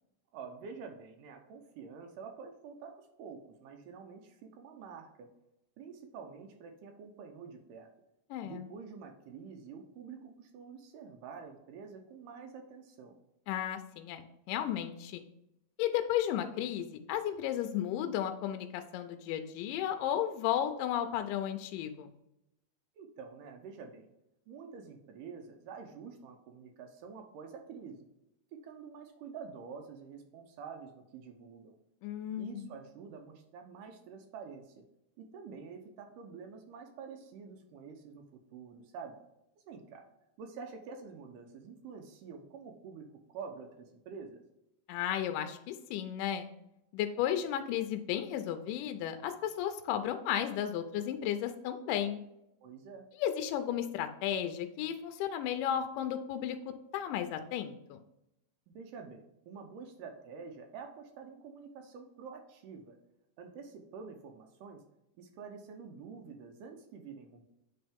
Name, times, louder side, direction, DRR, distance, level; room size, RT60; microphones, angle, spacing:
voice 1, 0.3-5.3 5.8-7.9 8.4-13.2 23.0-24.1 24.5-28.1 28.5-31.8 32.4-34.8 35.2-38.2 38.5-39.2 39.6-40.0 40.4-44.4 52.6-53.1 58.7-63.0 63.4-64.8 65.2-67.4, right 5 dB, 80° right, 4 dB, 2.3 m, -48 dB
voice 2, 8.3-8.7 13.5-15.2 15.8-22.1 32.0-32.7 44.9-46.5 46.9-52.2 53.2-58.0, left 10 dB, 85° left, 7 dB, 2.1 m, -34 dB
8.7 x 3.6 x 3.5 m, 0.85 s
omnidirectional pair, 3.8 m